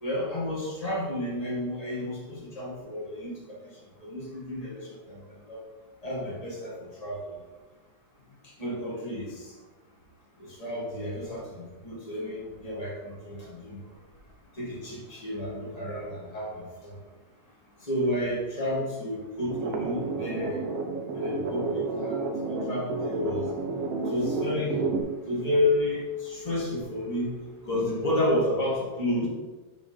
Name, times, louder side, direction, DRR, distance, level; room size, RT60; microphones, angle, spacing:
voice 1, 0.0-5.6 6.0-7.4 8.4-9.5 10.4-14.0 14.5-17.0 17.8-20.6 21.1-23.5 24.0-24.8 25.2-27.4 27.6-29.3, left 1 dB, 85° left, -5 dB, 0.3 m, -31 dB
sound 1, 19.5-25.0, right 3 dB, 70° right, 1.5 m, -31 dB
8.4 x 3.4 x 5.7 m, 1.3 s
omnidirectional pair, 3.6 m